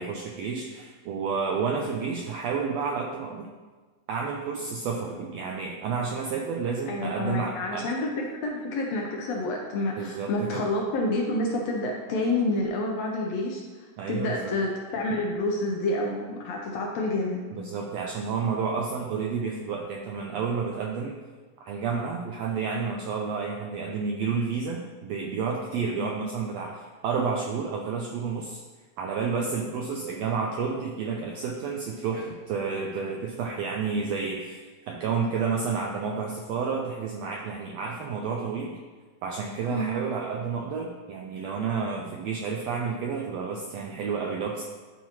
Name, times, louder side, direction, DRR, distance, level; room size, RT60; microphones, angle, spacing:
voice 1, 0.0-3.5 4.1-7.9 10.0-10.6 14.0-14.5 17.5-21.2 21.6-28.6 29.0-38.8 39.2-44.6, right 5 dB, 85° right, 1 dB, 1.5 m, -30 dB
voice 2, 6.9-13.6 14.1-17.4 26.0-26.1 39.7-40.0, left 2 dB, 75° left, 0 dB, 1.6 m, -28 dB
11.5 x 4.6 x 2.9 m, 1.4 s
omnidirectional pair, 3.6 m